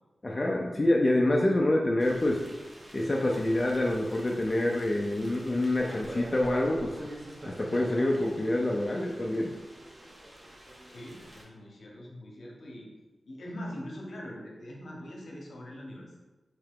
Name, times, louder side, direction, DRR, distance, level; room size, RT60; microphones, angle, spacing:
voice 1, 0.2-2.4 2.9-6.9 7.5-9.5, left 1 dB, 25° left, -1 dB, 0.3 m, -26 dB
sound 1, 2.0-11.4, right 1 dB, 30° right, 0.7 m, -45 dB
voice 2, 10.9-12.9 13.2-16.2, equal, 70° left, -1 dB, 0.8 m, -42 dB
3.3 x 2.8 x 3.5 m, 1.2 s
wide cardioid pair, 150°, 0 cm